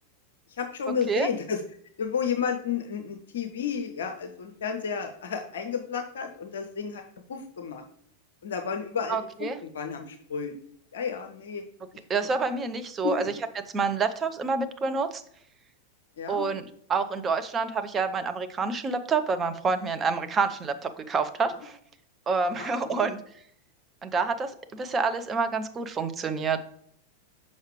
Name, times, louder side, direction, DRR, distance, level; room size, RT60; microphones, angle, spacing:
voice 1, 0.6-1.6 2.0-7.0 7.3-7.8 8.4-10.6 10.9-11.6 13.0-13.3 16.2-16.5 22.6-23.1, left 6 dB, 60° left, 7 dB, 0.6 m, -32 dB
voice 2, 9.1-9.6 12.1-15.2 16.3-21.8 22.3-23.2 24.0-26.6, right 4 dB, 20° right, 8 dB, 0.6 m, -28 dB
6.4 x 5.3 x 3.1 m, 0.65 s
figure-of-eight pair, 90°, 0 cm